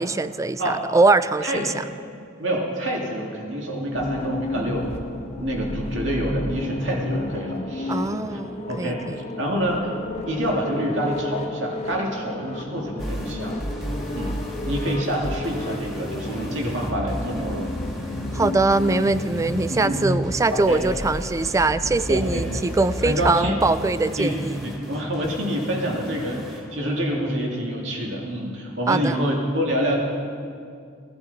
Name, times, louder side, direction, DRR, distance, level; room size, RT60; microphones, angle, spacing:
voice 1, 0.0-1.7 7.9-9.2 18.3-24.6 28.9-29.2, right 3 dB, 15° right, 14 dB, 0.3 m, -22 dB
voice 2, 2.4-4.9 5.4-8.4 8.7-9.9 10.3-13.6 14.1-14.4 14.7-17.7 19.7-20.0 20.5-20.8 22.1-22.4 23.0-23.6 24.2-24.3 24.6-30.0, equal, 70° right, -1 dB, 2.1 m, -27 dB
sound 1, 3.9-23.4, left 1 dB, 35° left, 0.8 m, -32 dB
sound 2, 13.0-27.0, equal, ahead, 1.6 m, -36 dB
17.0 x 11.5 x 4.0 m, 2.3 s
head